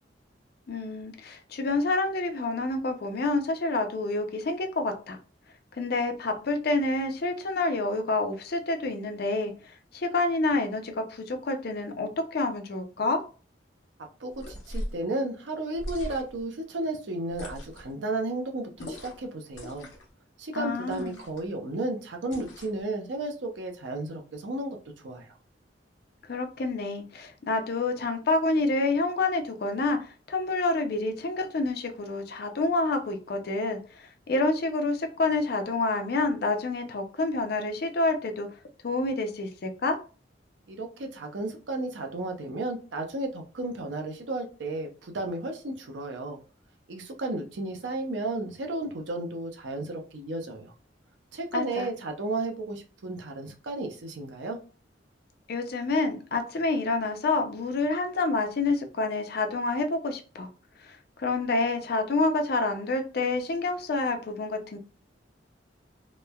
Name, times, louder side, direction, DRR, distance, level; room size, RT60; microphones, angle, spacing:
voice 1, 0.7-5.2 5.8-9.5 9.9-13.2 20.5-21.2 26.3-38.5 38.8-40.0 51.5-51.9 55.5-60.5 60.8-64.8, left 3 dB, 60° left, 6 dB, 0.5 m, -28 dB
voice 2, 14.2-19.9 20.4-25.4 40.7-46.4 46.9-50.7 51.3-54.6, right 2 dB, 80° right, 3 dB, 0.6 m, -33 dB
sound 1, 14.3-15.0 15.7-16.4 17.3-17.9 18.8-19.3 19.5-20.1 20.9-21.5 22.3-22.8, left 1 dB, 85° left, 0.9 m, -39 dB
3.0 x 2.1 x 2.2 m, 0.36 s
head